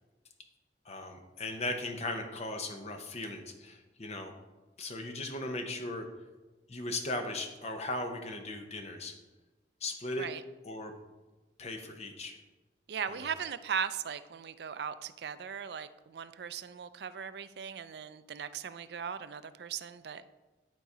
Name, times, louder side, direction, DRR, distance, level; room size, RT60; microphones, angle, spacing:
voice 1, 0.8-4.3 4.8-6.1 6.7-9.1 9.8-10.3 10.6-10.9 11.6-12.4 13.1-13.3, left 2 dB, 35° left, 5 dB, 0.8 m, -37 dB
voice 2, 12.9-20.3, right 7 dB, 65° right, 13 dB, 0.4 m, -38 dB
10.5 x 4.0 x 4.9 m, 1.2 s
head